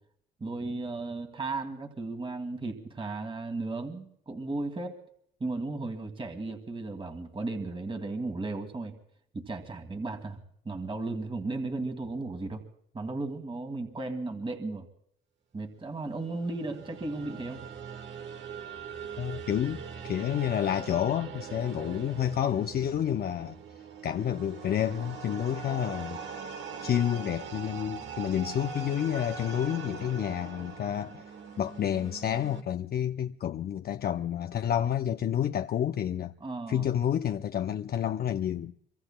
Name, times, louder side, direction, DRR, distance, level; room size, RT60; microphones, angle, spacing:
voice 1, 0.4-5.0 5.4-8.9 9.3-10.4 10.7-12.6 12.9-14.9 15.5-17.6 36.4-36.9, right 3 dB, 25° right, 1.8 m, -35 dB
sound 1, 16.2-32.6, right 6 dB, 65° right, 1.2 m, -42 dB
voice 2, 19.2-23.6 24.0-26.2 26.8-31.2 31.6-36.3 36.7-38.7, left 10 dB, 50° left, 0.5 m, -29 dB
26.0 x 24.0 x 2.2 m
cardioid pair, 90°, 20 cm